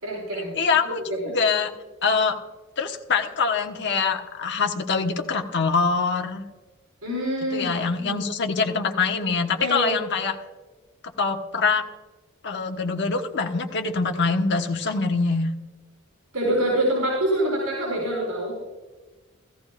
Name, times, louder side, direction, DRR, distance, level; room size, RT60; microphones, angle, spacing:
voice 1, 0.0-0.5 0.8-1.3 7.0-7.7 8.0-8.2 9.6-10.0 16.3-18.5, right 1 dB, 80° right, -4 dB, 4.8 m, -26 dB
voice 2, 0.5-1.7 2.0-2.4 2.8-6.4 7.5-10.4 11.2-11.8 12.4-15.5, left 4 dB, 60° left, 4 dB, 1.2 m, -24 dB
17.0 x 14.0 x 2.5 m, 1.2 s
head